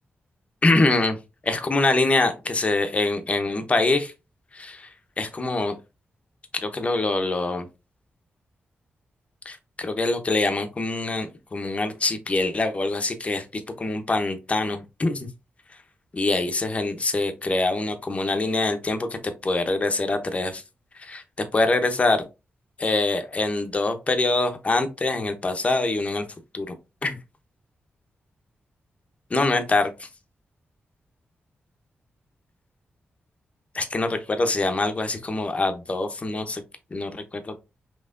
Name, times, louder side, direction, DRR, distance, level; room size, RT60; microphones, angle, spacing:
voice 1, 0.6-1.2 1.4-4.1 4.5-4.9 5.2-5.7 6.6-7.7 9.4-15.3 16.1-20.6 21.0-21.2 21.5-22.2 22.8-26.2 26.5-26.7 27.0-27.2 29.3-30.1 33.7-36.6 36.9-37.7, left 2 dB, 30° left, 0.8 m, -24 dB
5.6 x 3.1 x 2.5 m
wide cardioid pair, 105°, 4 cm